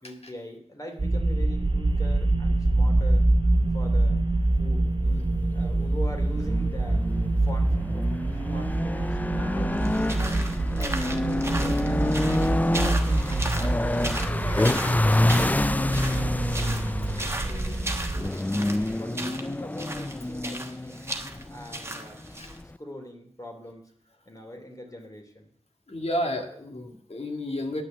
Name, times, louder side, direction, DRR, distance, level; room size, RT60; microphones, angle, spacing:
voice 1, 0.0-3.2 3.7-4.2 4.6-5.3 5.5-7.0 7.4-8.1 8.5-10.5 10.7-13.8 14.2-18.4 18.7-22.3 22.6-23.9 24.3-25.5, left 1 dB, 30° left, 2 dB, 2.7 m, -42 dB
sound 1, 1.0-18.3, right 2 dB, 40° right, 1.0 m, -26 dB
sound 2, 6.1-22.8, left 1 dB, 15° left, 0.3 m, -28 dB
sound 3, 9.8-22.6, right 1 dB, 20° right, 1.2 m, -36 dB
voice 2, 25.9-27.8, equal, 60° left, 3 dB, 2.0 m, -31 dB
9.8 x 6.1 x 7.7 m, 0.63 s
wide cardioid pair, 45°, 12 cm